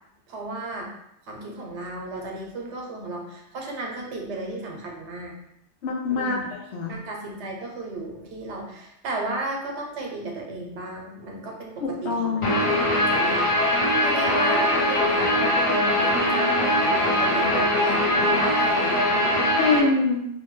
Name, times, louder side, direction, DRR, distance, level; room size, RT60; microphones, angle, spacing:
voice 1, 0.3-0.9 1.3-5.3 6.1-6.4 6.9-12.4 12.8-19.1, right 2 dB, 85° right, 0 dB, 1.0 m, -34 dB
voice 2, 5.8-6.9 11.8-12.6 19.6-20.3, left 3 dB, 75° left, -1 dB, 0.9 m, -25 dB
Guitar, 12.4-19.8, left 1 dB, 45° left, 0.4 m, -21 dB
2.6 x 2.2 x 3.0 m, 0.80 s
omnidirectional pair, 1.2 m